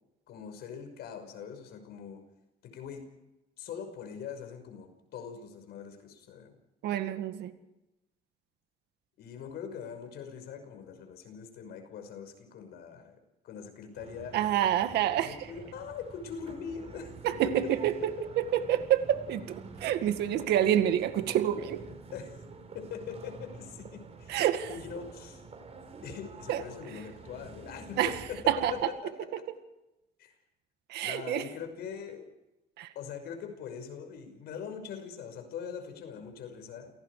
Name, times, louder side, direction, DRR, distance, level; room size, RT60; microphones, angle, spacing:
voice 1, 0.3-2.2 2.6-3.1 3.6-6.5 9.2-13.2 13.4-14.4 15.2-17.7 22.1-22.4 22.7-24.4 24.7-25.4 26.0-29.4 30.2-30.4 31.0-32.3 32.9-36.9, left 7 dB, 75° left, 6 dB, 5.8 m, -42 dB
voice 2, 6.8-7.5 14.3-15.3 17.2-21.8 24.3-24.7 26.5-26.6 28.0-28.1 28.5-28.7 30.9-31.4 32.8-32.9, right 11 dB, 80° right, 9 dB, 2.0 m, -27 dB
sound 1, 13.9-28.9, right 4 dB, 40° right, 4.9 m, -48 dB
29.5 x 18.5 x 5.0 m, 0.93 s
cardioid pair, 110°, 17 cm